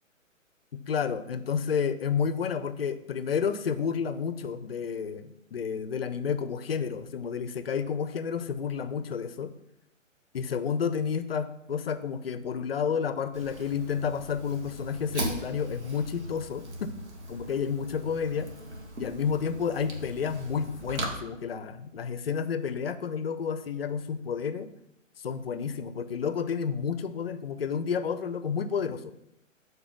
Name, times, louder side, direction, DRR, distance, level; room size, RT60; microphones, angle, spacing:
voice 1, 0.7-9.5 10.3-16.9 17.3-18.5 19.0-24.7 25.2-29.1, left 6 dB, 50° left, 12 dB, 0.6 m, -30 dB
Fire, 13.3-21.1, right 1 dB, 60° right, 1.6 m, -39 dB
6.8 x 4.1 x 5.2 m, 0.81 s
figure-of-eight pair, 135°, 39 cm